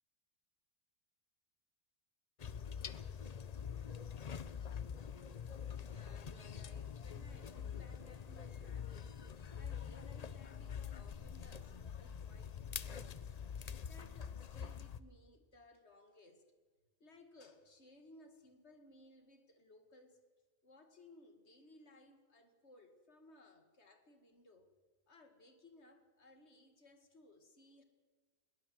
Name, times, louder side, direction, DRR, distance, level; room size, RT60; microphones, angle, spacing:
sound 1, 2.4-15.0, left 7 dB, 40° left, 0.7 m, -45 dB
voice 1, 5.8-13.3 13.8-16.4 17.0-20.2 20.6-24.7 25.1-27.8, left 2 dB, 80° left, 7 dB, 2.3 m, -62 dB
21.0 x 19.0 x 7.7 m, 1.4 s
omnidirectional pair, 1.1 m